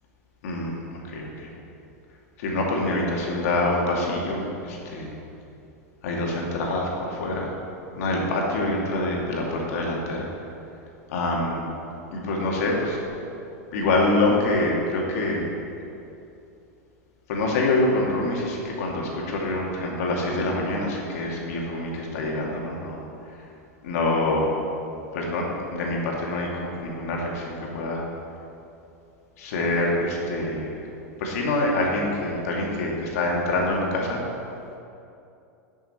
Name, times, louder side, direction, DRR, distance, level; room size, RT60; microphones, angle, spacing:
voice 1, 2.4-5.1 6.0-7.5 8.0-10.2 11.1-11.6 12.1-13.0 13.7-15.5 17.3-23.0 23.8-24.5 25.1-25.4 25.7-28.0 29.4-30.7 31.2-34.2, left 2 dB, 70° left, -2 dB, 2.1 m, -25 dB
11.0 x 6.1 x 4.3 m, 2.7 s
hypercardioid pair, 110°, 8 cm